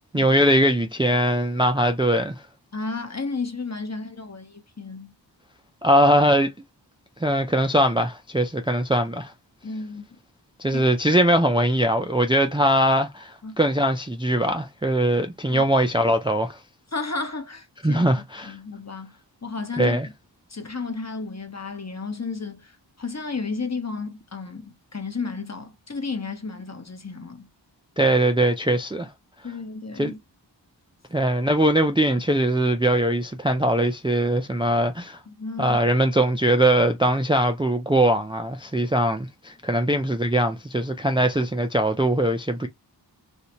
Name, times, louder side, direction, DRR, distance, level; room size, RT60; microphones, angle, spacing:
voice 1, 0.1-2.4 5.8-6.5 7.2-9.3 10.6-16.6 17.8-18.6 19.8-20.1 28.0-29.1 30.0-30.1 31.1-35.2 35.6-42.7, right 1 dB, 10° right, 0.4 m, -21 dB
voice 2, 2.7-5.1 9.6-10.0 10.7-10.9 13.4-13.6 15.5-15.7 16.9-18.1 18.4-19.1 19.4-20.1 20.5-22.7 23.0-27.5 29.4-30.2 35.3-35.8, left 4 dB, 35° left, 1.0 m, -32 dB
3.2 x 2.7 x 2.9 m
wide cardioid pair, 60°, 44 cm